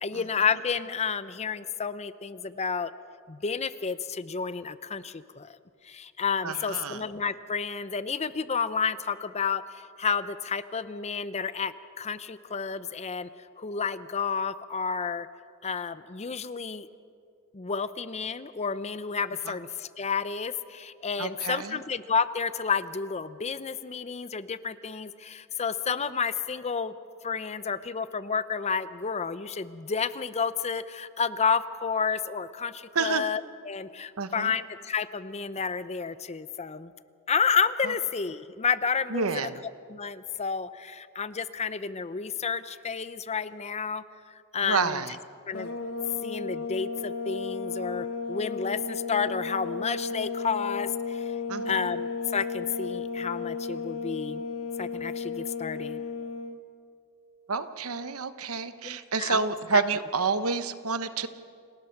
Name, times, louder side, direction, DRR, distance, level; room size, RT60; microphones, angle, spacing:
voice 1, 0.0-2.9 3.3-5.5 5.8-13.3 13.6-15.3 15.6-16.9 17.5-26.9 27.2-36.9 37.3-39.5 39.9-44.0 44.3-45.0 45.5-45.7 46.2-51.3 51.6-54.4 54.8-56.0 58.8-59.8, left 5 dB, 30° left, 14 dB, 0.6 m, -31 dB
voice 2, 6.4-7.0 21.2-21.8 32.9-33.2 34.2-34.5 39.1-39.5 44.6-45.1 51.5-51.8 57.5-61.3, right 4 dB, 80° right, 11 dB, 1.0 m, -29 dB
sound 1, 45.5-56.6, left 4 dB, 80° left, 1.5 m, -34 dB
29.0 x 19.5 x 5.9 m, 2.3 s
head